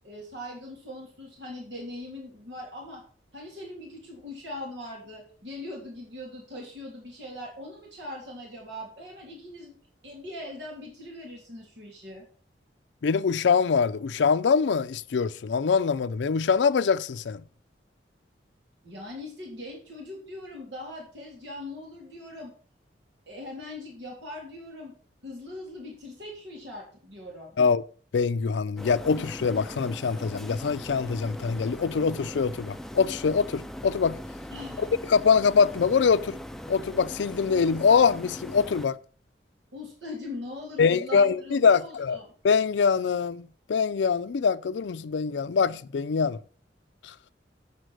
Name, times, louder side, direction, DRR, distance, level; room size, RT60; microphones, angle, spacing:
voice 1, 0.0-3.0 3.3-9.8 10.0-12.3 18.8-22.5 23.3-24.9 25.2-27.6 34.5-34.9 39.7-42.3, left 1 dB, 85° right, 3.3 m, -41 dB
voice 2, 13.0-17.4 27.6-27.8 28.1-34.2 35.1-36.4 36.7-39.0 40.8-42.2 42.4-46.4 47.0-47.1, left 5 dB, 90° left, 0.4 m, -24 dB
sound 1, 28.8-38.9, left 1 dB, ahead, 0.4 m, -40 dB
7.7 x 7.3 x 6.2 m
head